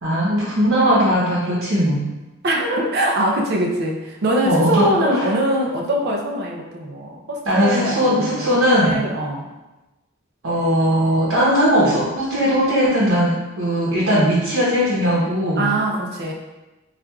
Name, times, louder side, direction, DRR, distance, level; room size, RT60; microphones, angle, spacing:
voice 1, 0.0-2.1 4.4-5.3 7.4-9.1 10.4-15.7, equal, 85° right, -7 dB, 0.9 m, -18 dB
voice 2, 2.4-9.4 15.6-16.3, right 1 dB, 55° right, 0 dB, 0.5 m, -23 dB
4.3 x 2.4 x 2.3 m, 1.1 s
head